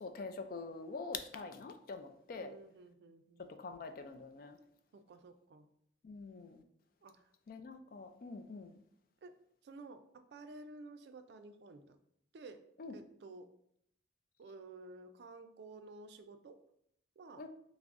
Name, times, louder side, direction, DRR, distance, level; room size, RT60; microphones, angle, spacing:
voice 1, 0.0-2.5 3.4-4.6 6.0-6.6 7.5-8.8 12.8-12.9 17.4-17.5, left 4 dB, 50° left, 8 dB, 0.3 m, -45 dB
voice 2, 2.4-3.5 4.9-5.7 7.0-7.3 9.2-9.3 9.6-12.0 12.3-12.6 12.9-13.5 14.4-16.6 17.2-17.4, right 3 dB, 65° right, 8 dB, 0.3 m, -53 dB
5.8 x 2.0 x 2.5 m, 0.73 s
head